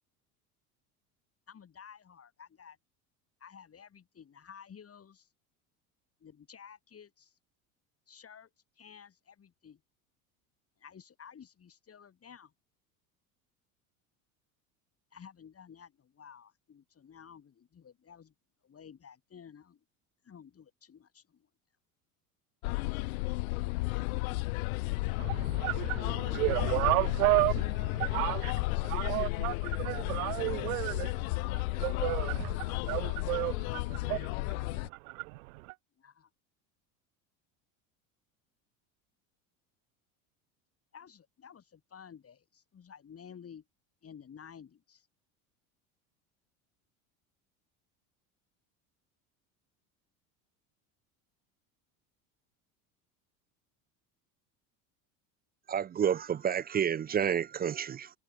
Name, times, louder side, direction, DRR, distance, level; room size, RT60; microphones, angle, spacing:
voice 1, 1.5-2.8 3.4-5.3 6.2-7.4 8.1-8.5 8.8-9.8 10.8-12.5 15.1-18.3 18.6-19.8 20.2-21.5 36.0-36.3 40.9-43.6 44.0-45.1, left 7 dB, 35° left, 5.4 m, -53 dB
sound 1, 22.6-34.9, left 24 dB, 75° left, 2.1 m, -33 dB
voice 2, 25.2-35.7, right 23 dB, 75° right, 2.6 m, -33 dB
voice 3, 55.7-58.1, right 8 dB, 20° right, 0.5 m, -30 dB
hypercardioid pair, 85°, 42 cm